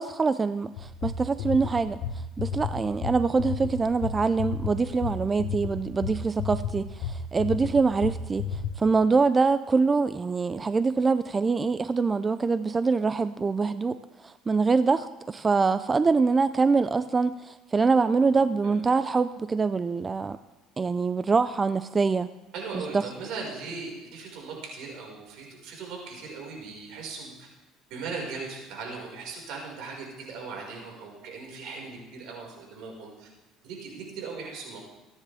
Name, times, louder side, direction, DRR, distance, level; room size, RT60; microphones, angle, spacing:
voice 1, 0.0-2.0 2.4-20.4 20.8-22.3 22.7-23.1, right 4 dB, 20° right, 13 dB, 0.4 m, -24 dB
sound 1, 0.8-8.7, left 6 dB, 75° left, 1.3 m, -32 dB
voice 2, 22.5-27.5 27.9-33.3 33.6-34.8, right 4 dB, 70° right, -1 dB, 5.3 m, -38 dB
27.5 x 9.9 x 3.5 m, 1.1 s
cardioid pair, 125°, 0 cm